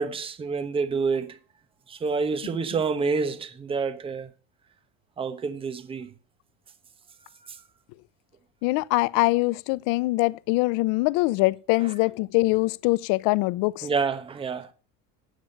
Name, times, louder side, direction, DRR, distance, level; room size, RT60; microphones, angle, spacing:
voice 1, 0.0-1.4 1.9-4.3 5.2-6.1 13.8-14.7, right 4 dB, 15° right, 1.1 m, -28 dB
voice 2, 8.6-13.9, left 22 dB, 65° left, 0.7 m, -23 dB
13.0 x 8.5 x 5.3 m
cardioid pair, 165°, 33 cm